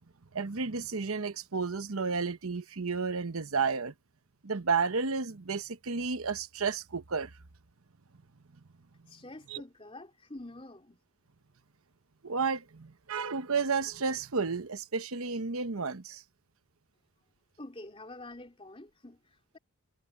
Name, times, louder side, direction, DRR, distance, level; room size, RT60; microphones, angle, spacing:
voice 1, 0.3-3.9 4.4-7.3 9.5-9.6 12.2-16.2, right 5 dB, 85° right, 1.0 m, -32 dB
voice 2, 9.1-11.0 17.6-19.6, left 2 dB, 25° left, 3.4 m, -47 dB
head